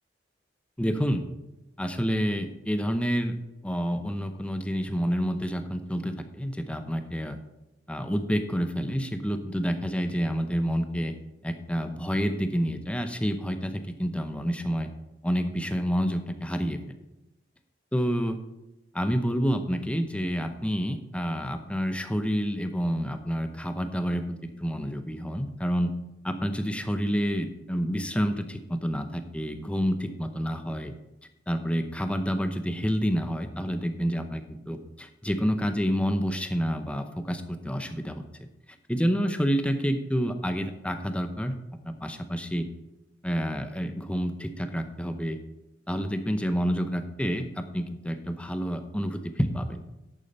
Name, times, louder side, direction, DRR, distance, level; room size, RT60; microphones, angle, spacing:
voice 1, 0.8-1.2 1.8-3.3 3.6-7.4 7.9-11.1 11.4-14.9 15.2-16.8 17.9-18.4 18.9-24.2 24.6-25.9 26.2-30.9 31.5-38.5 38.9-41.6 41.8-42.7 43.2-45.4 45.9-49.8, equal, 5° left, 8 dB, 0.7 m, -28 dB
11.0 x 8.7 x 4.3 m, 0.98 s
head